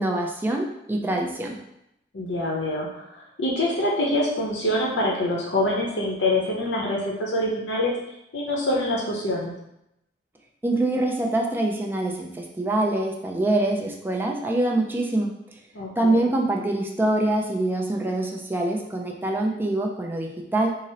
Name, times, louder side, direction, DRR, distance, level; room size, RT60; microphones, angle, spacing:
voice 1, 0.0-1.6 10.6-15.3 16.0-20.7, right 1 dB, 10° right, 0 dB, 0.4 m, -24 dB
voice 2, 2.1-7.9 8.3-9.5 15.7-16.2, left 1 dB, 90° left, -2 dB, 0.7 m, -25 dB
3.8 x 2.0 x 4.0 m, 0.81 s
head